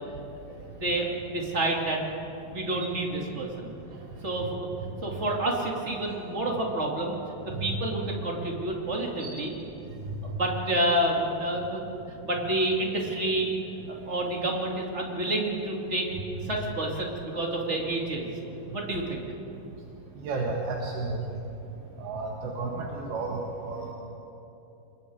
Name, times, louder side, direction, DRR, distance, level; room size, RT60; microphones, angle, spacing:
voice 1, 0.7-2.0 2.5-3.7 4.2-4.7 5.0-7.2 7.4-9.5 10.3-13.5 14.1-16.1 16.4-18.3 18.7-19.2, right 1 dB, 25° right, -1 dB, 1.7 m, -29 dB
voice 2, 20.2-21.2 22.0-23.9, right 3 dB, 70° right, -1 dB, 3.4 m, -32 dB
27.0 x 21.5 x 4.7 m, 2.9 s
omnidirectional pair, 4.6 m